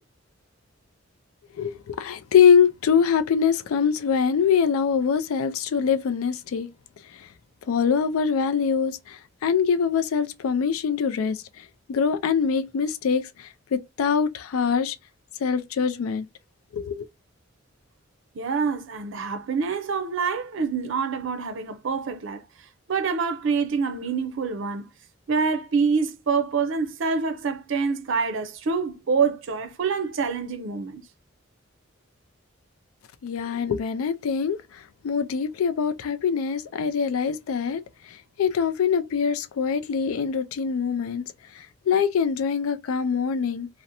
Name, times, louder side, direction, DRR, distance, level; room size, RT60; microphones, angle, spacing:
voice 1, 1.6-6.7 7.7-11.4 11.9-15.0 15.4-16.3 16.7-17.1 33.2-34.6 35.0-37.8 38.4-41.2 41.6-43.7, left 6 dB, 85° left, 0.4 m, -23 dB
voice 2, 18.3-22.4 22.9-24.9 25.3-31.0, right 5 dB, 65° right, 0.5 m, -26 dB
2.5 x 2.1 x 2.7 m
head